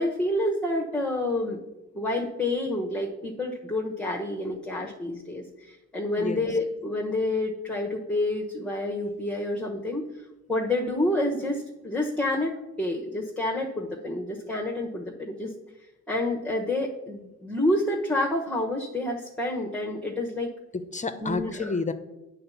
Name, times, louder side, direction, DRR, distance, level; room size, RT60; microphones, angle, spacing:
voice 1, 0.0-1.6 1.9-10.0 10.5-15.5 16.1-20.5 21.2-21.7, left 1 dB, 5° left, -1 dB, 1.1 m, -28 dB
voice 2, 20.7-21.9, left 4 dB, 25° left, 9 dB, 0.6 m, -30 dB
8.6 x 4.1 x 7.0 m, 0.97 s
cardioid pair, 90°, 30 cm